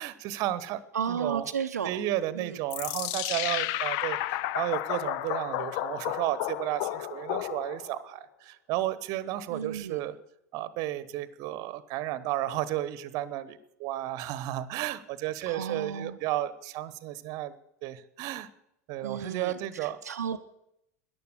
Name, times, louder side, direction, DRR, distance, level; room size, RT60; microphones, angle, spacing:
voice 1, 0.0-0.8 1.1-1.5 1.8-10.2 10.5-17.6 17.8-18.5 18.9-20.0, right 14 dB, 45° right, 16 dB, 1.0 m, -33 dB
voice 2, 0.9-2.0 2.4-2.6 9.5-10.0 15.4-16.2 19.0-20.4, right 7 dB, 75° right, 6 dB, 0.6 m, -33 dB
sound 1, 2.7-8.0, left 15 dB, 45° left, 0.5 m, -32 dB
14.0 x 10.5 x 6.6 m, 0.79 s
figure-of-eight pair, 85°, 9 cm